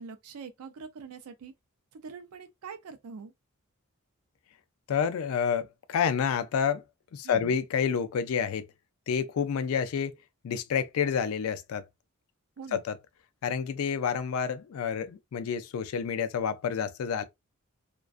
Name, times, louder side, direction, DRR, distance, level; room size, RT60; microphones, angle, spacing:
voice 1, 0.0-1.5 1.9-3.3 7.2-7.6 12.6-12.8, right 5 dB, 80° right, 0.4 m, -43 dB
voice 2, 4.9-6.8 7.1-8.6 9.1-10.2 10.4-11.8 12.7-12.9 13.4-17.2, left 7 dB, 70° left, 0.3 m, -29 dB
2.3 x 2.2 x 2.4 m
head